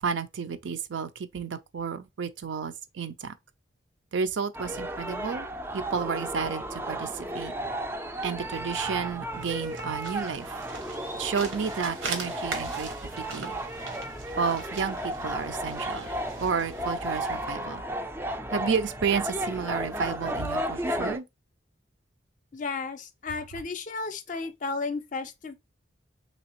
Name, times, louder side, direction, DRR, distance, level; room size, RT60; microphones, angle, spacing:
voice 1, 0.0-3.3 4.1-5.5 5.7-7.5 8.2-10.6 11.2-13.6 14.4-16.1 16.4-17.8 18.5-21.3, right 6 dB, 70° right, 0.5 m, -31 dB
sound 1, 4.5-21.2, right 1 dB, 10° right, 0.4 m, -34 dB
sound 2, 9.2-17.5, right 4 dB, 85° right, 1.2 m, -41 dB
voice 2, 22.5-25.5, left 4 dB, 40° left, 0.5 m, -33 dB
3.3 x 3.0 x 2.8 m
head